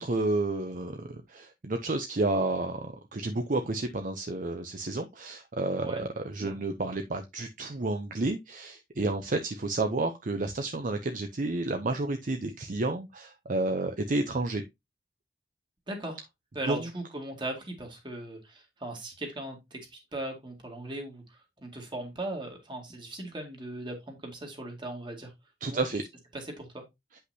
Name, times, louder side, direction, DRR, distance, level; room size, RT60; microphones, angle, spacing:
voice 1, 0.0-14.6 16.7-16.9 25.6-26.0, right 2 dB, 45° right, 0.6 m, -31 dB
voice 2, 15.9-16.2 16.5-25.3 25.7-25.8 26.3-26.8, right 1 dB, 25° right, 2.1 m, -38 dB
8.0 x 5.6 x 2.8 m
head